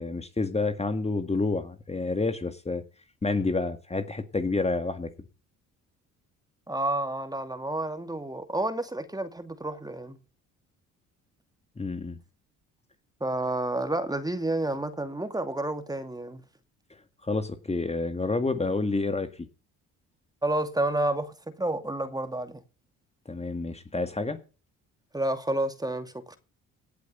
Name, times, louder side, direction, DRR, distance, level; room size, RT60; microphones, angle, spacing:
voice 1, 0.0-2.8 3.2-5.1 11.8-12.2 17.2-19.3 23.3-24.4, left 3 dB, 20° left, 1.9 m, -29 dB
voice 2, 6.7-10.2 13.2-16.4 20.4-22.6 25.1-26.4, right 1 dB, 10° right, 2.3 m, -30 dB
17.5 x 8.2 x 5.6 m
supercardioid pair, 75°, 32 cm